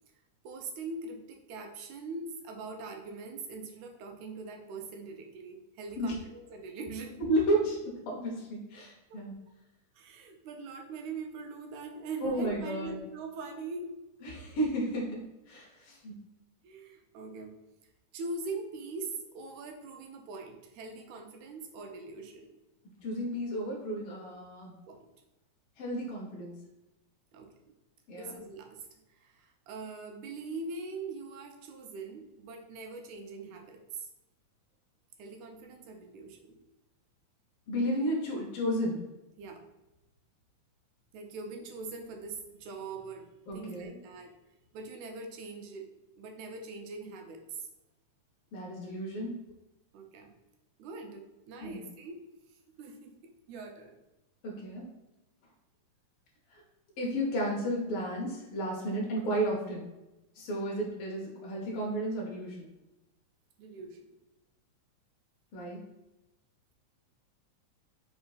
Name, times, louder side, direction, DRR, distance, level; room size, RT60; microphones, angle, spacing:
voice 1, 0.4-7.2 9.1-9.2 10.0-13.9 16.6-17.6 18.1-22.5 24.9-25.1 27.3-27.5 28.1-28.9 29.2-34.1 35.2-36.6 39.4-39.6 41.1-43.3 43.5-44.3 44.7-45.9 46.2-47.6 49.9-50.3 50.8-52.2 52.8-54.0 63.6-64.0, right 3 dB, 80° right, 3 dB, 1.9 m, -42 dB
voice 2, 7.2-9.3 12.2-13.0 14.2-16.1 23.0-24.7 25.8-26.5 28.1-28.3 37.7-39.0 43.5-44.0 48.5-49.4 51.6-51.8 54.4-54.9 56.5-56.6 57.0-59.9 60.3-62.7 65.5-65.8, right 1 dB, 80° left, -2 dB, 1.2 m, -32 dB
5.1 x 3.5 x 2.3 m, 0.99 s
omnidirectional pair, 3.5 m